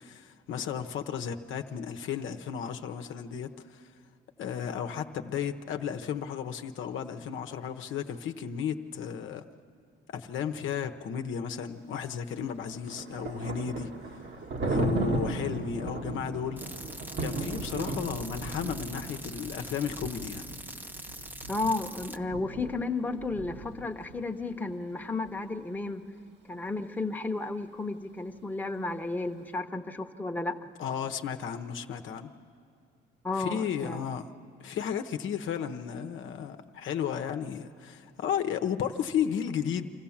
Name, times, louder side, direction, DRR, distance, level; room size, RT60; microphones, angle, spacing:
voice 1, 0.0-3.9 4.4-9.4 10.1-14.3 14.6-16.6 17.2-20.4 30.8-32.3 33.3-34.3 34.6-40.0, left 8 dB, 70° left, 6 dB, 0.9 m, -34 dB
Thunder, 12.4-24.2, right 2 dB, 60° right, 1.6 m, -36 dB
sound 1, 16.6-22.2, right 1 dB, 10° right, 0.7 m, -43 dB
voice 2, 21.5-26.0 26.5-30.6 33.2-34.1, left 3 dB, 10° left, 4 dB, 1.0 m, -33 dB
25.0 x 15.0 x 7.2 m, 2.4 s
cardioid pair, 80°, 21 cm